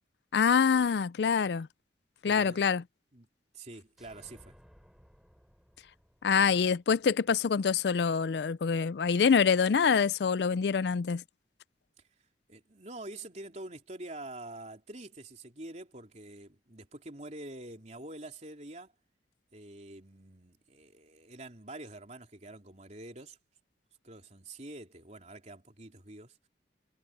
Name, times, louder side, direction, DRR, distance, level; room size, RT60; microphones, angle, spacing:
voice 1, 0.3-1.7 2.2-2.8 6.2-11.2, left 6 dB, 70° left, 0.4 m, -25 dB
voice 2, 2.2-2.7 3.1-3.3 3.5-4.6 12.5-18.9 19.5-23.4 24.0-26.4, right 2 dB, 40° right, 3.6 m, -46 dB
sound 1, 4.0-7.7, equal, ahead, 6.7 m, -60 dB
head